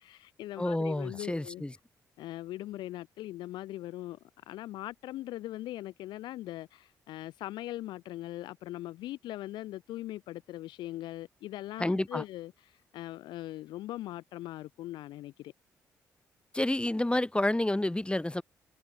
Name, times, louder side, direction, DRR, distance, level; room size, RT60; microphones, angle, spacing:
voice 1, 0.0-1.6 2.2-4.2 4.5-15.5, left 15 dB, 75° left, 4.9 m, -40 dB
voice 2, 0.6-1.7 11.8-12.2 16.5-18.4, left 1 dB, 15° left, 7.2 m, -29 dB
hypercardioid pair, 45°, 8 cm